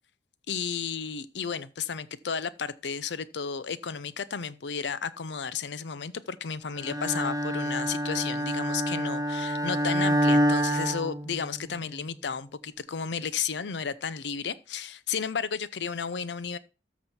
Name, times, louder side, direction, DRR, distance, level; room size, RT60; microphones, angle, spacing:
voice 1, 0.5-16.6, left 6 dB, 75° left, 0.6 m, -33 dB
Bowed string instrument, 6.8-11.8, equal, 20° right, 0.8 m, -27 dB
13.5 x 6.2 x 4.3 m
head